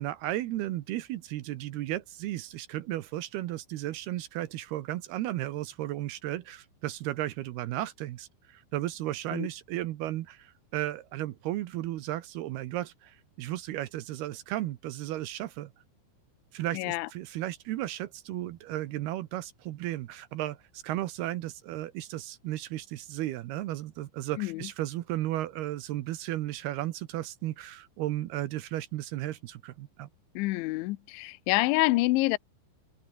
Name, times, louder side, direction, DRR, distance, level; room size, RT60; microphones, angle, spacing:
voice 1, 0.0-15.7 16.5-30.1, right 14 dB, 80° right, 2.3 m, -34 dB
voice 2, 16.7-17.1 24.4-24.7 30.4-32.4, left 21 dB, 80° left, 2.9 m, -27 dB
omnidirectional pair, 6.0 m